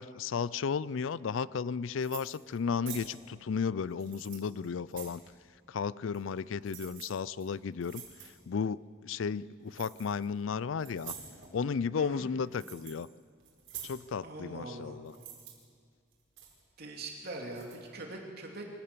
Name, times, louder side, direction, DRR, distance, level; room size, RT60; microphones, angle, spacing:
voice 1, 0.0-5.2 5.7-11.1 11.5-13.1 13.8-15.1, left 6 dB, 80° left, 20 dB, 0.4 m, -34 dB
sound 1, 2.0-2.6 2.9-3.1 3.9-5.2 6.1-6.4 6.6-7.1 7.4-7.5 7.8-8.3 9.7-10.2 10.8-11.5 12.2-13.0 13.4-14.0 15.1-15.5 16.1-16.6 17.5-17.7, right 9 dB, 80° right, 4.8 m, -46 dB
voice 2, 11.9-12.3 14.2-15.0 16.8-18.7, right 2 dB, 55° right, 0 dB, 3.0 m, -42 dB
24.5 x 16.0 x 6.9 m, 2.1 s
head